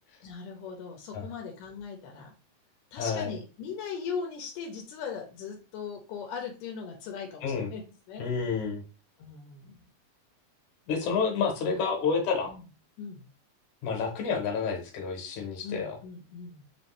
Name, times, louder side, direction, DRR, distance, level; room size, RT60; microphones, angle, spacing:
voice 1, 0.2-2.3 2.9-7.8 8.1-8.2 9.2-9.8 12.4-12.6 13.0-13.3 15.6-16.6, left 6 dB, 85° left, 1 dB, 2.3 m, -39 dB
voice 2, 3.0-3.4 7.4-7.7 8.2-8.8 10.9-12.5 13.8-16.0, left 5 dB, 70° left, 2 dB, 2.4 m, -29 dB
5.1 x 3.1 x 3.0 m, 0.35 s
omnidirectional pair, 3.7 m